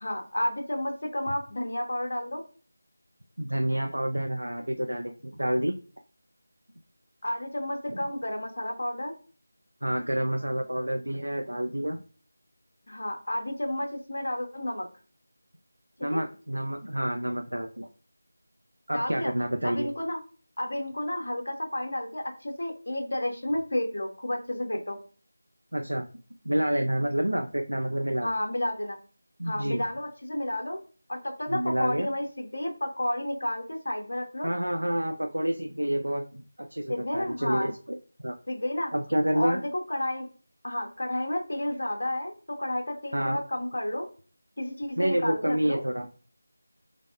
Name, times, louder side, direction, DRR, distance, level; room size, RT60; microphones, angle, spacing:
voice 1, 0.0-2.4 7.2-9.1 12.9-14.9 16.1-16.3 18.9-19.3 19.6-20.2 20.6-25.0 28.2-29.0 29.4-30.8 31.1-34.5 36.9-37.7 38.5-38.9 39.3-40.3 40.6-44.1 44.6-45.8, left 1 dB, 60° left, 2 dB, 0.7 m, -31 dB
voice 2, 3.4-5.7 7.9-8.0 9.8-12.0 16.0-17.9 18.9-19.9 25.7-26.1 26.4-28.3 29.4-29.8 31.5-32.1 34.4-38.0 38.2-38.4 38.9-39.6 43.1-43.4 45.0-46.1, right 1 dB, 90° right, 4 dB, 0.3 m, -28 dB
3.3 x 2.0 x 2.4 m, 0.39 s
figure-of-eight pair, 170°, 0 cm